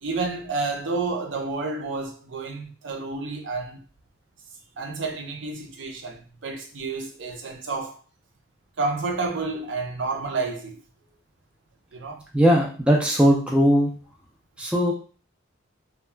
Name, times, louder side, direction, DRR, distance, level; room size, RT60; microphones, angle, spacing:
voice 1, 0.0-3.8 4.8-8.0 8.8-10.8 11.9-12.2, right 3 dB, 65° right, 0.5 m, -30 dB
voice 2, 12.3-13.9 14.6-14.9, equal, 5° right, 0.4 m, -19 dB
2.2 x 2.1 x 3.2 m
head